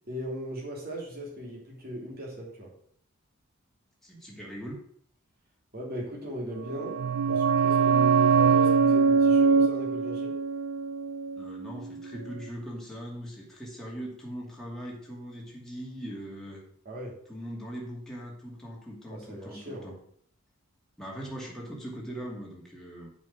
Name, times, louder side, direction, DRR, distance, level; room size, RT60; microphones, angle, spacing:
voice 1, 0.1-2.7 5.7-7.0 7.3-10.3 16.8-17.1 19.1-19.9, equal, 40° right, -3 dB, 3.1 m, -38 dB
voice 2, 4.0-4.8 11.4-16.6 17.3-20.0 21.0-23.1, equal, ahead, -4 dB, 2.4 m, -40 dB
sound 1, 6.6-12.0 12.3-12.4, right 5 dB, 90° right, 0.5 m, -23 dB
7.6 x 5.6 x 7.6 m, 0.62 s
head